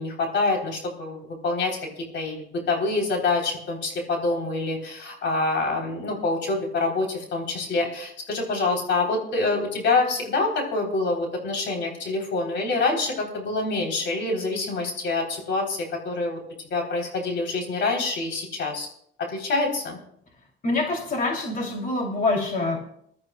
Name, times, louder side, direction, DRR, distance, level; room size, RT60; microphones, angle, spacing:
voice 1, 0.0-16.4 16.7-18.9 19.3-20.0, left 3 dB, 65° left, 1 dB, 3.5 m, -26 dB
voice 2, 20.6-22.8, left 2 dB, 45° left, 1 dB, 2.8 m, -25 dB
22.0 x 12.5 x 2.3 m, 0.69 s
cardioid pair, 90°, 20 cm